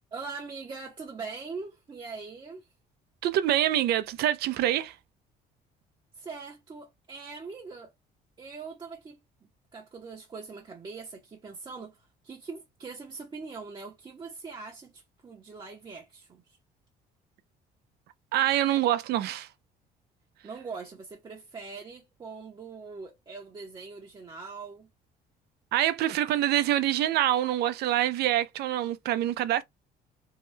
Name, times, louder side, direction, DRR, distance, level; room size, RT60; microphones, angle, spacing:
voice 1, 0.1-2.7 6.1-7.9 8.4-9.2 9.7-16.6 20.4-24.9, right 4 dB, 25° right, 0.7 m, -42 dB
voice 2, 3.2-4.9 18.3-19.5 25.7-29.6, right 12 dB, 75° right, 0.5 m, -25 dB
2.8 x 2.2 x 3.1 m
cardioid pair, 110°, 17 cm